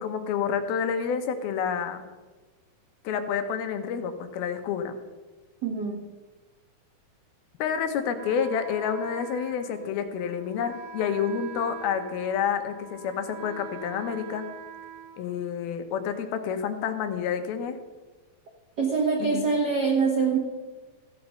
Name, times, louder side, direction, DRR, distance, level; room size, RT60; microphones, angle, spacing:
voice 1, 0.0-2.1 3.0-5.0 7.6-14.5 15.2-17.8 19.2-19.5, left 7 dB, 80° left, 8 dB, 2.8 m, -29 dB
voice 2, 5.6-6.0 18.8-20.4, right 5 dB, 60° right, -1 dB, 1.0 m, -24 dB
Wind instrument woodwind instrument, 8.2-15.9, right 7 dB, 85° right, 2.7 m, -44 dB
15.0 x 8.4 x 5.8 m, 1.3 s
omnidirectional pair, 4.3 m